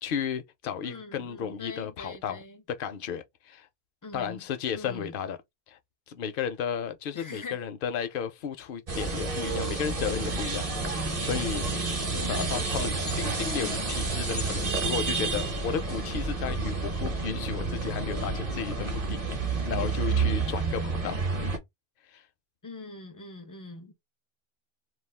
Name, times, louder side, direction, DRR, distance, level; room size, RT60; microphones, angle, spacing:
voice 1, 0.0-2.4 2.7-3.7 4.1-5.4 5.7-5.8 6.1-10.7 11.2-11.7 12.3-19.2 19.5-21.2 22.1-22.2, left 7 dB, 65° left, 0.7 m, -33 dB
voice 2, 0.8-2.6 4.0-4.5 4.7-5.2 7.1-7.6 12.1-12.7 22.6-23.9, left 3 dB, 30° left, 0.4 m, -43 dB
sound 1, 8.9-21.6, right 4 dB, 40° right, 0.8 m, -30 dB
2.4 x 2.3 x 3.3 m
omnidirectional pair, 1.1 m